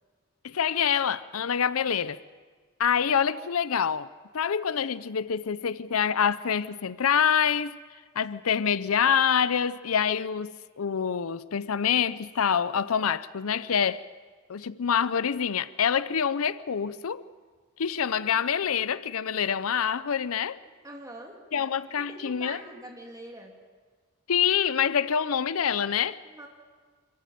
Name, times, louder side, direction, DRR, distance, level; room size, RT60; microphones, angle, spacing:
voice 1, 0.4-2.2 2.8-4.1 4.3-7.8 8.2-14.0 14.5-17.2 17.8-20.6 21.5-22.6 24.3-26.2, left 7 dB, 85° left, 0.6 m, -26 dB
voice 2, 20.6-21.4 22.1-23.5 26.2-26.5, right 1 dB, 15° right, 2.9 m, -44 dB
25.5 x 14.5 x 9.2 m
head